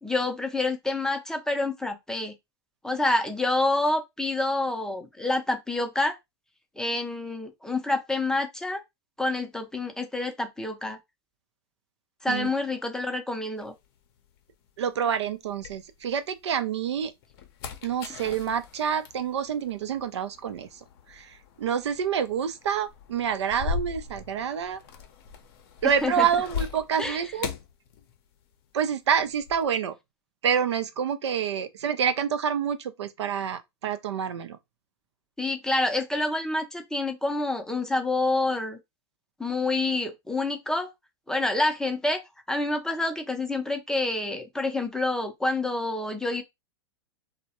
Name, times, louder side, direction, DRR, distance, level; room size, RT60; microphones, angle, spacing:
voice 1, 0.0-2.3 2.8-6.2 6.8-8.8 9.2-11.0 12.2-13.7 26.0-26.3 27.0-27.2 35.4-38.8 39.4-40.9 41.3-42.2 42.5-46.4, left 2 dB, 5° left, 0.5 m, -27 dB
sound 1, 13.6-16.4 16.8-28.6 28.8-29.7, left 6 dB, 60° left, 0.6 m, -40 dB
voice 2, 14.8-17.1 17.8-20.7 21.1-24.8 25.8-27.5 28.7-29.9 30.4-34.6, right 8 dB, 85° right, 0.4 m, -27 dB
2.2 x 2.0 x 2.8 m
hypercardioid pair, 110°, 14 cm